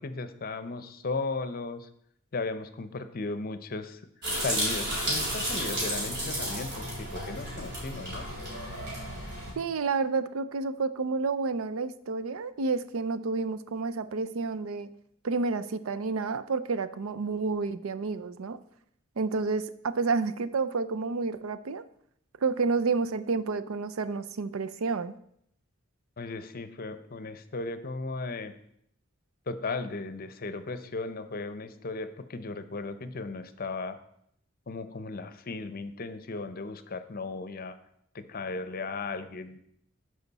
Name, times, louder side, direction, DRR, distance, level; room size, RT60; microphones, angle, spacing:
voice 1, 0.0-1.9 2.3-4.0 4.4-8.3 26.2-28.5 29.5-34.0 34.7-37.7 38.1-39.6, left 3 dB, 45° left, 11 dB, 0.7 m, -36 dB
sound 1, 4.2-9.5, equal, 55° right, 3.1 m, -32 dB
voice 2, 9.6-14.9 15.2-18.6 19.2-21.8 22.4-25.1, right 4 dB, 85° right, 13 dB, 0.5 m, -30 dB
12.0 x 5.1 x 4.1 m, 0.71 s
head